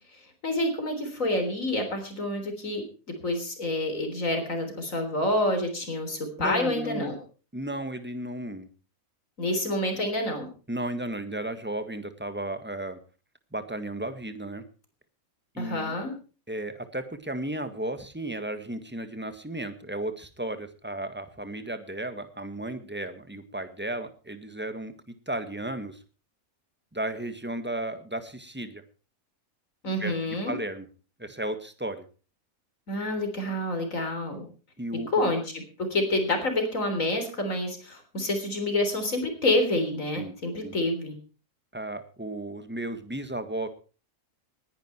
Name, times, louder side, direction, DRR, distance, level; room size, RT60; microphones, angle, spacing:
voice 1, 0.4-2.8 3.2-7.2 9.4-10.5 15.6-16.1 29.8-30.6 32.9-34.5 35.1-35.6 35.9-41.2, left 1 dB, 65° left, 5 dB, 4.0 m, -28 dB
voice 2, 6.4-7.1 7.5-8.7 10.7-13.0 13.5-14.6 15.5-16.0 16.5-24.9 25.3-26.0 26.9-28.8 30.0-30.9 31.2-32.0 34.8-35.1 40.1-40.3 40.6-40.7 41.7-43.7, right 1 dB, 10° right, 9 dB, 1.6 m, -34 dB
20.0 x 11.0 x 4.5 m, 0.36 s
omnidirectional pair, 1.5 m